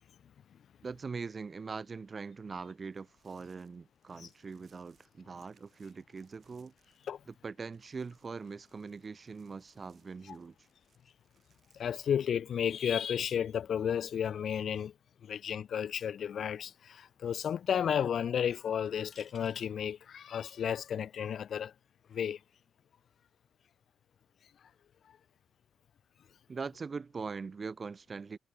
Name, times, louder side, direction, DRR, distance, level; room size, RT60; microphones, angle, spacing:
voice 1, 0.8-6.7 7.4-10.5 26.5-28.4, right 4 dB, 40° right, 0.4 m, -42 dB
sound 1, 2.9-7.4 7.6-12.0, right 7 dB, 60° right, 7.1 m, -73 dB
voice 2, 11.7-14.9 15.2-21.7 22.1-22.4, left 8 dB, 70° left, 0.4 m, -33 dB
sound 2, 16.0-16.3 16.6-16.7 18.9-19.7 21.5-21.7, left 6 dB, 50° left, 0.9 m, -52 dB
cardioid pair, 80°, 0 cm